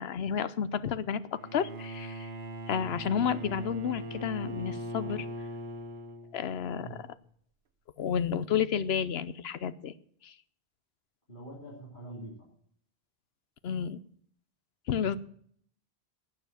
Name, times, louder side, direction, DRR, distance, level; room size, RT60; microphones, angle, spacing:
voice 1, 0.0-2.3 2.7-5.3 6.3-7.1 8.0-9.9 10.2-10.3 13.6-14.0 14.9-15.2, left 8 dB, 75° left, 15 dB, 1.0 m, -31 dB
Bowed string instrument, 1.3-6.6, right 1 dB, 70° right, 1.2 m, -40 dB
voice 2, 11.3-12.5 15.0-15.2, right 2 dB, 50° left, -4 dB, 3.5 m, -45 dB
12.5 x 9.2 x 7.5 m, 0.62 s
omnidirectional pair, 1.1 m